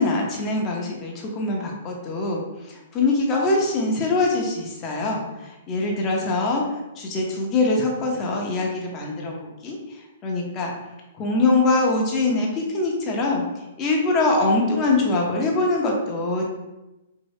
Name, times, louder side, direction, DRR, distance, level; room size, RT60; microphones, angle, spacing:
voice 1, 0.0-9.8 10.2-10.7 11.1-16.4, left 2 dB, 25° left, -1 dB, 0.7 m, -23 dB
2.7 x 2.7 x 3.1 m, 1.0 s
hypercardioid pair, 140°, 0 cm